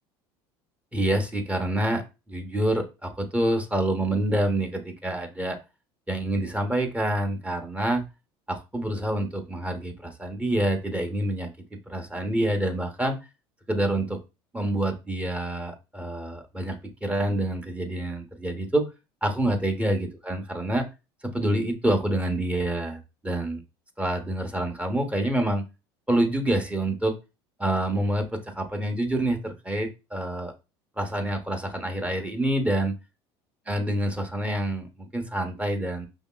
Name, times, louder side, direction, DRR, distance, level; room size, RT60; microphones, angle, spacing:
voice 1, 0.9-5.6 6.1-8.0 8.5-13.2 13.7-14.2 14.5-18.8 19.2-20.9 21.2-23.6 24.0-25.7 26.1-27.1 27.6-30.5 31.0-33.0 33.7-36.1, right 1 dB, 10° right, 4 dB, 0.9 m, -27 dB
5.2 x 2.8 x 2.2 m, 0.28 s
hypercardioid pair, 80°, 13 cm